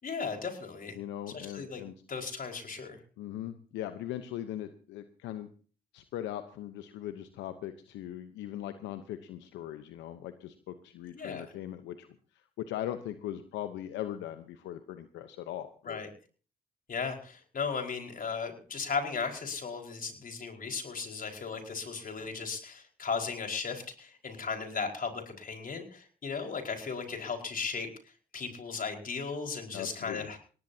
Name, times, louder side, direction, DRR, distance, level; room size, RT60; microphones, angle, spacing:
voice 1, 0.0-1.0 1.3-1.8 2.1-3.0 11.1-11.5 15.8-16.1 16.9-27.9 28.3-30.4, left 5 dB, 50° left, 3 dB, 5.0 m, -36 dB
voice 2, 0.9-1.9 3.2-5.5 5.9-12.1 12.6-16.0 29.7-30.3, left 12 dB, 85° left, 9 dB, 1.0 m, -39 dB
21.5 x 18.5 x 2.8 m, 0.40 s
supercardioid pair, 55°, 18 cm